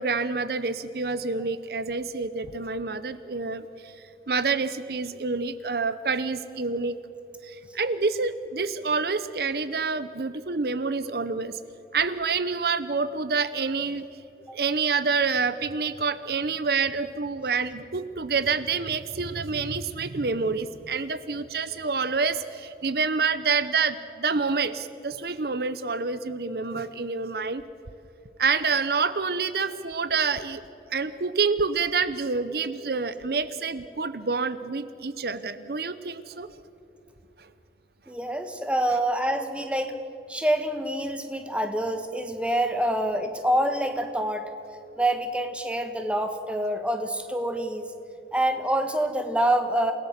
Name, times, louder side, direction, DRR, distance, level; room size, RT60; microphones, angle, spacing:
voice 1, 0.0-4.0 4.3-7.0 7.4-11.6 11.9-14.1 14.5-27.6 28.4-30.6 30.9-36.5 37.4-37.5, right 4 dB, 55° right, 13 dB, 0.7 m, -27 dB
voice 2, 38.1-39.9 40.3-44.5 45.0-47.9 48.3-49.9, right 1 dB, 5° right, 7 dB, 1.4 m, -26 dB
28.5 x 18.0 x 7.4 m, 2.9 s
head